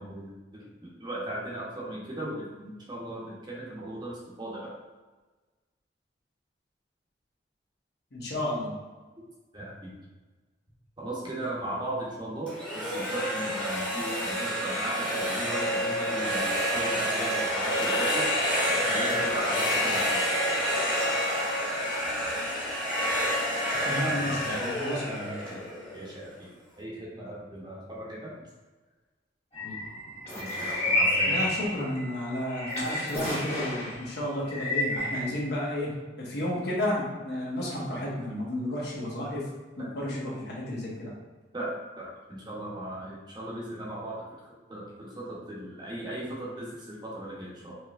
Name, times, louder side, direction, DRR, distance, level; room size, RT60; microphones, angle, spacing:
voice 1, 0.0-4.7 9.5-9.9 11.0-18.3 18.7-20.4 23.8-24.6 25.9-26.5 26.8-28.3 30.3-31.4 41.5-44.3 44.7-47.8, right 1 dB, 25° right, -5 dB, 0.8 m, -37 dB
voice 2, 8.1-8.7 23.9-25.6 29.6-29.8 31.3-35.9 36.2-39.4 39.8-41.1, left 1 dB, 60° left, -4 dB, 1.0 m, -32 dB
sound 1, 12.5-26.3, equal, 5° left, 0.9 m, -28 dB
sound 2, 29.5-34.0 34.5-35.2, left 1 dB, 30° left, 1.4 m, -30 dB
4.7 x 2.9 x 2.4 m, 1.3 s
head